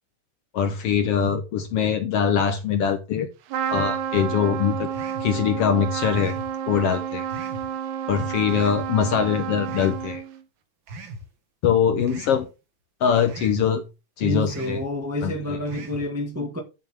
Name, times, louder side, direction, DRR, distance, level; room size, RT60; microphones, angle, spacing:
voice 1, 0.5-3.3 3.7-4.9 5.2-6.3 6.7-7.3 8.1-10.2 11.6-12.5 13.0-13.8 14.2-14.8 15.2-15.3, left 7 dB, 65° left, 1.6 m, -22 dB
Trumpet, 3.5-10.4, right 9 dB, 90° right, 2.4 m, -30 dB
sound 1, 4.9-5.3 6.1-6.5 7.3-7.7 8.5-8.9 9.7-10.0 10.9-11.2 12.1-12.4 13.3-13.6 14.5-14.8 15.7-16.0, right 2 dB, 50° right, 1.9 m, -39 dB
voice 2, 14.2-16.6, left 1 dB, 10° right, 0.9 m, -28 dB
11.0 x 6.7 x 3.6 m
omnidirectional pair, 3.3 m